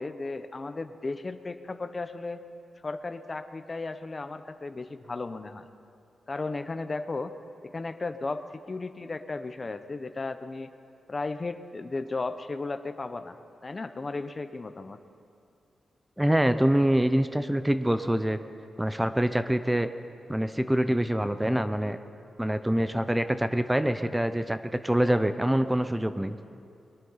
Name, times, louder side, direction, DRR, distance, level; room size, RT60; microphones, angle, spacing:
voice 1, 0.0-2.4 2.8-5.6 6.3-7.3 7.6-10.7 11.1-13.4 13.6-15.0, left 3 dB, 35° left, 10 dB, 0.8 m, -35 dB
voice 2, 16.2-18.4 18.8-19.9 20.3-22.0 22.4-26.4, right 1 dB, 10° right, 10 dB, 0.6 m, -25 dB
22.5 x 9.2 x 5.6 m, 2.5 s
cardioid pair, 70°, 0 cm